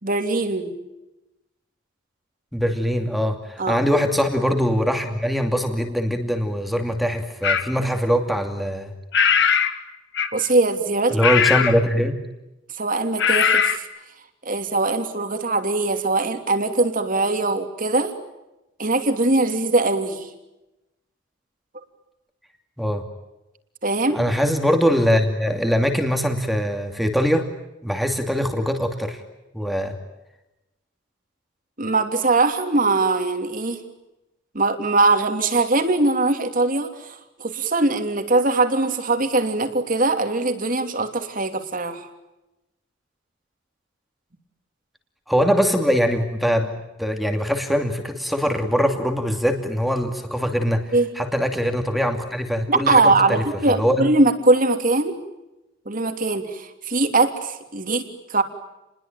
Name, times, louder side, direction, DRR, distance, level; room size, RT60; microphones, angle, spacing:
voice 1, 0.0-0.8 3.6-3.8 10.3-11.2 12.8-13.9 14.4-18.1 18.8-20.3 23.8-24.2 31.8-33.8 34.5-42.1 50.9-51.1 52.7-55.2 55.9-58.4, right 2 dB, 40° right, 7 dB, 3.0 m, -21 dB
voice 2, 2.5-8.9 11.1-12.2 22.8-23.0 24.1-27.5 27.8-29.2 29.5-30.0 45.3-50.8 51.2-54.1, equal, ahead, 5 dB, 2.6 m, -22 dB
sound 1, 7.4-7.7 9.1-9.8 10.1-10.5 11.2-11.8 13.2-13.8, left 7 dB, 60° left, 1.8 m, -19 dB
30.0 x 21.5 x 9.1 m, 0.96 s
head